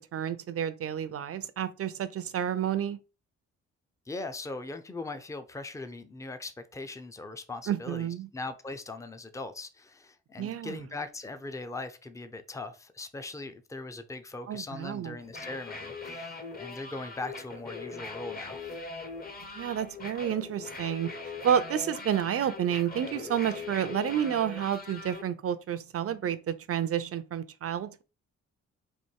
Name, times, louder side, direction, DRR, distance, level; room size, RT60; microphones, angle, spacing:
voice 1, 0.0-3.0 7.7-8.3 10.4-10.8 14.5-15.2 19.5-21.1 21.4-28.0, right 9 dB, 50° right, 0.6 m, -30 dB
voice 2, 4.1-18.7, left 2 dB, 10° left, 0.6 m, -40 dB
sound 1, 15.2-25.2, left 3 dB, 30° left, 1.0 m, -41 dB
4.3 x 2.6 x 4.6 m
cardioid pair, 80°, 29 cm